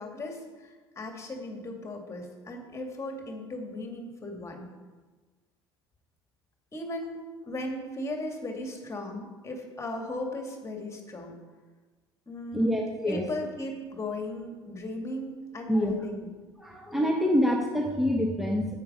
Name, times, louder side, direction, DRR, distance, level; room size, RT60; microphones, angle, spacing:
voice 1, 0.0-4.7 6.7-11.4 12.3-12.8 13.1-16.3, left 1 dB, 20° left, 3 dB, 2.1 m, -37 dB
voice 2, 12.5-13.3 15.7-15.9 16.6-18.7, equal, ahead, 0 dB, 1.2 m, -26 dB
9.3 x 8.1 x 5.1 m, 1.3 s
figure-of-eight pair, 60°, 14 cm